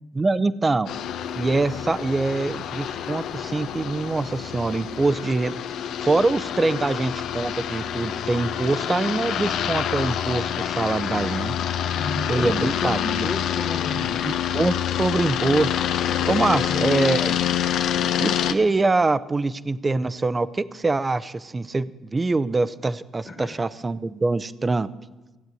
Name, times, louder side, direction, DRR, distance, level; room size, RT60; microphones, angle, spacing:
voice 1, 0.1-0.9 1.3-5.6 6.0-11.5 12.3-13.3 14.2-15.7 16.3-17.4 18.2-24.9, right 3 dB, 20° right, 15 dB, 0.6 m, -24 dB
sound 1, 0.9-18.5, left 10 dB, 70° left, 0.8 m, -27 dB
voice 2, 12.0-14.3 16.5-16.8 23.3-23.6, left 2 dB, 30° left, 1 dB, 1.8 m, -32 dB
16.0 x 8.0 x 9.1 m, 1.1 s
cardioid pair, 95°, 0 cm